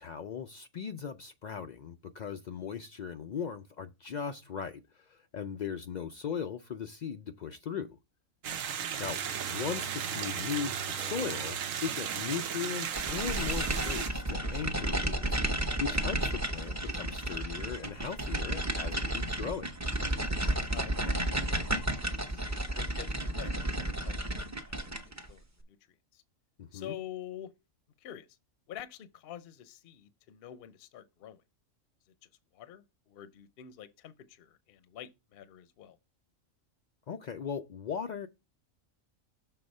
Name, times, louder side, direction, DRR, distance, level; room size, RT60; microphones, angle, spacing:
voice 1, 0.0-7.9 9.0-9.2 9.5-15.4 15.8-19.7 26.6-26.9 37.1-38.3, left 7 dB, 85° left, 0.4 m, -38 dB
sound 1, 8.4-14.1, right 8 dB, 85° right, 1.1 m, -35 dB
Bowed string instrument, 8.9-13.4, right 8 dB, 40° right, 0.9 m, -47 dB
sound 2, 12.9-25.3, right 1 dB, 15° right, 0.6 m, -32 dB
voice 2, 20.6-22.4 22.7-25.0 25.3-25.8 26.1-26.2 26.7-27.5 28.0-28.3 28.7-31.4 32.5-36.0, left 11 dB, 55° left, 0.7 m, -47 dB
6.7 x 3.7 x 5.2 m
omnidirectional pair, 1.3 m